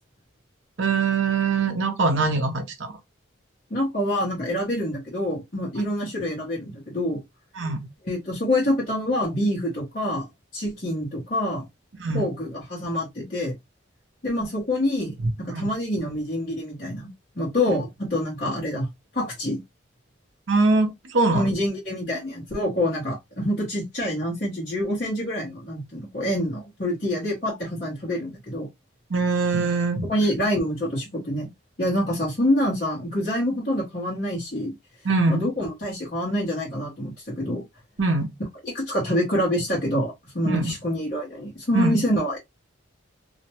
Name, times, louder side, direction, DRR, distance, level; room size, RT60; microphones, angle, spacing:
voice 1, 0.8-2.9 7.6-7.9 12.0-12.3 15.2-15.7 20.5-21.5 29.1-30.1 35.0-35.5 38.0-38.3 40.4-40.7 41.7-42.0, right 3 dB, 65° right, 0.6 m, -23 dB
voice 2, 3.7-7.2 8.0-10.3 10.5-11.7 12.1-13.5 14.2-17.1 17.4-18.9 19.1-19.6 21.3-28.7 30.1-31.5 31.8-34.7 35.3-37.6 38.6-42.4, left 1 dB, 40° left, 0.9 m, -26 dB
2.5 x 2.1 x 2.8 m
head